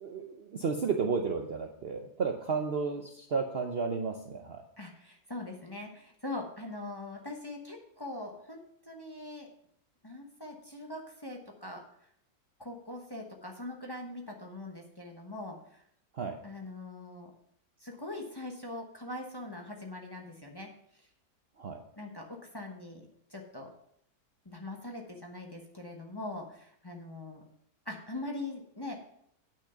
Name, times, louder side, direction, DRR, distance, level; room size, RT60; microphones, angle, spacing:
voice 1, 0.0-4.6 16.1-16.4 21.6-21.8, right 5 dB, 50° right, 4 dB, 0.8 m, -32 dB
voice 2, 4.8-9.5 10.0-11.8 12.6-15.8 16.4-17.3 17.8-20.7 22.0-23.7 24.4-27.4 27.9-29.0, left 2 dB, 15° left, 1 dB, 1.0 m, -42 dB
8.7 x 6.2 x 5.7 m, 0.70 s
omnidirectional pair, 1.6 m